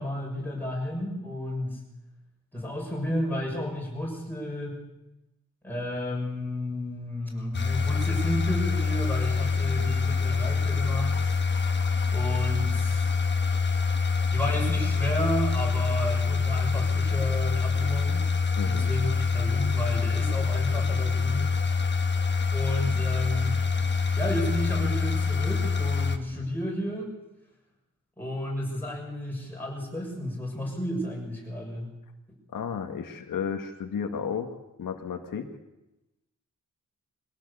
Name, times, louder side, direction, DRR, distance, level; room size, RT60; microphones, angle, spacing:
voice 1, 0.0-1.8 2.5-4.8 5.6-11.2 12.1-13.1 14.3-18.3 18.6-21.5 22.5-23.7 24.1-27.1 28.2-32.0, equal, 5° left, -2 dB, 6.5 m, -32 dB
sound 1, 7.5-26.2, left 5 dB, 35° left, 1.4 m, -26 dB
voice 2, 18.6-18.9 32.5-35.5, left 7 dB, 90° left, 4 dB, 1.9 m, -33 dB
23.0 x 17.0 x 6.9 m, 0.95 s
wide cardioid pair, 155°, 32 cm